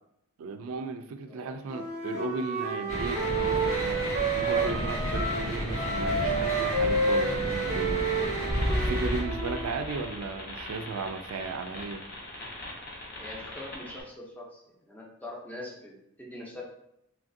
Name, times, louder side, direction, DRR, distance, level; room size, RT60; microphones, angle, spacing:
voice 1, 0.4-8.1 8.7-12.1, right 4 dB, 85° right, 8 dB, 0.3 m, -36 dB
Wind instrument woodwind instrument, 1.6-5.5 5.7-9.7, right 3 dB, 35° right, 0.6 m, -30 dB
sound 1, 2.9-9.2, equal, 85° left, 1.3 m, -32 dB
sound 2, 8.5-14.0, left 1 dB, 45° left, 0.7 m, -35 dB
voice 2, 13.2-16.6, left 1 dB, 10° left, -2 dB, 0.5 m, -43 dB
3.2 x 2.5 x 2.5 m, 0.81 s
head